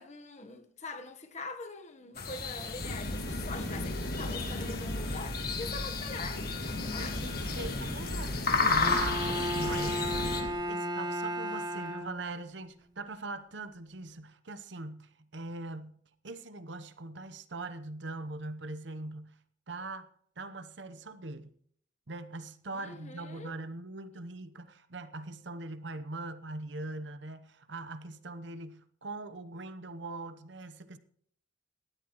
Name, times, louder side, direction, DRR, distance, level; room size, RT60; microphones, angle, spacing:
voice 1, 0.0-6.4 6.8-7.3 22.7-23.5, left 3 dB, 40° left, 1.2 m, -43 dB
sound 1, 2.2-10.4, left 4 dB, 55° left, 1.7 m, -34 dB
sound 2, 2.8-10.5, left 1 dB, 75° left, 2.2 m, -37 dB
voice 2, 6.9-16.0 16.2-19.4 19.7-20.1 20.4-21.5 22.1-31.0, right 2 dB, 70° right, 0.9 m, -41 dB
Bowed string instrument, 8.8-12.5, equal, 20° right, 1.1 m, -34 dB
18.0 x 12.5 x 3.1 m
head